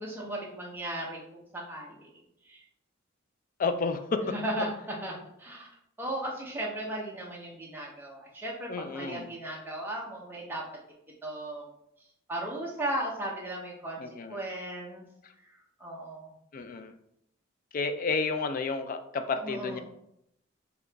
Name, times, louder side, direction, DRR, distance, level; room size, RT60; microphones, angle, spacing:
voice 1, 0.0-2.1 2.4-2.6 4.2-5.1 5.4-5.7 6.0-10.6 11.2-11.7 12.3-14.0 14.3-15.0 15.8-16.3 19.4-19.8, right 1 dB, 10° right, -3 dB, 0.8 m, -36 dB
voice 2, 3.6-4.3 8.7-9.3 14.0-14.4 15.2-15.3 16.5-17.0 17.7-19.8, left 4 dB, 40° left, 8 dB, 0.4 m, -31 dB
3.8 x 2.9 x 3.4 m, 0.77 s
head